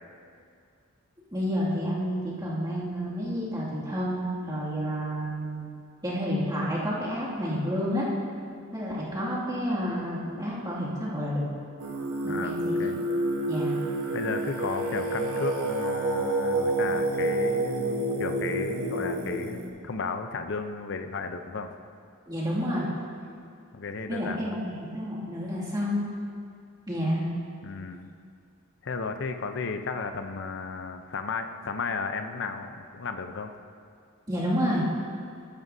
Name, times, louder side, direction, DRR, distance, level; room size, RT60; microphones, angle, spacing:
voice 1, 1.3-5.7 6.0-8.1 8.7-11.5 12.2-12.7 13.5-13.8 22.3-22.9 24.1-26.0 26.9-27.3 34.3-34.9, equal, 20° right, -8 dB, 2.3 m, -29 dB
Singing, 11.8-19.7, right 1 dB, 75° right, 1.2 m, -28 dB
voice 2, 12.2-13.0 14.1-21.7 23.7-24.5 27.6-28.1 28.8-33.5, left 4 dB, 60° left, 7 dB, 0.6 m, -34 dB
14.0 x 11.5 x 2.7 m, 2.3 s
head